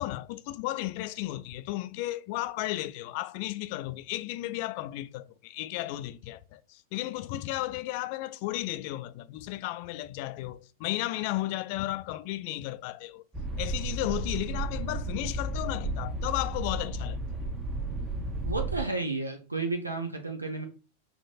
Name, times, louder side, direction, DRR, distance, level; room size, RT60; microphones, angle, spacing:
voice 1, 0.0-13.2 13.6-17.2, left 16 dB, 45° left, 0.4 m, -34 dB
sound 1, 13.3-18.8, right 2 dB, 20° right, 0.8 m, -33 dB
voice 2, 18.4-20.7, right 3 dB, 85° right, 0.7 m, -32 dB
4.5 x 2.5 x 4.1 m
figure-of-eight pair, 90°, 0 cm